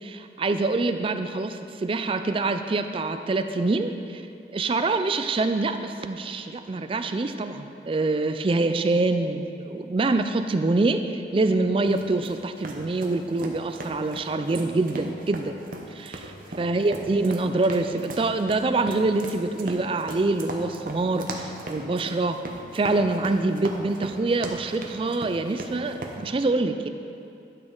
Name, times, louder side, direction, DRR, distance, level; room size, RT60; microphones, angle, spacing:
voice 1, 0.0-4.2 4.5-15.5 15.9-22.4 22.7-26.9, right 3 dB, 30° right, 8 dB, 0.3 m, -25 dB
sound 1, 11.9-26.2, right 2 dB, 50° right, 0.8 m, -38 dB
11.5 x 6.2 x 3.8 m, 2.6 s
head